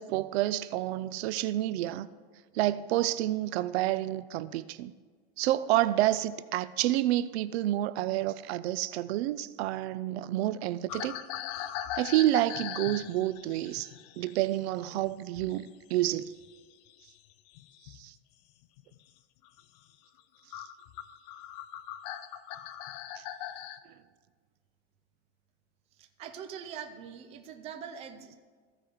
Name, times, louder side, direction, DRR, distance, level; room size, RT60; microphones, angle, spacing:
voice 1, 0.0-2.1 2.5-4.9 5.4-11.1 11.9-13.9 14.2-16.3 18.0-18.1 23.2-23.3, right 14 dB, 85° right, 0.5 m, -29 dB
sound 1, 10.9-15.7 16.0-18.1 18.6-19.0 19.4-19.6 20.2-20.3 20.5-23.8, left 11 dB, 40° left, 0.4 m, -41 dB
voice 2, 26.0-28.3, right 8 dB, 20° right, 0.4 m, -43 dB
14.5 x 5.0 x 4.6 m
supercardioid pair, 175°, 31 cm